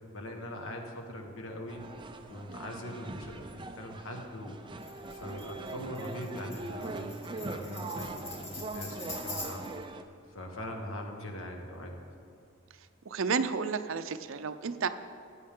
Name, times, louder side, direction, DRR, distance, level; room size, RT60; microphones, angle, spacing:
voice 1, 0.0-4.6 5.1-9.7 10.3-12.0, left 1 dB, 85° left, 2 dB, 1.5 m, -41 dB
sound 1, 1.7-10.0, right 2 dB, 25° right, 0.5 m, -41 dB
Tambourine, 4.8-9.8, left 2 dB, 30° left, 1.9 m, -44 dB
voice 2, 13.1-14.9, right 5 dB, 75° right, 11 dB, 0.5 m, -31 dB
15.5 x 8.6 x 3.7 m, 2.4 s
head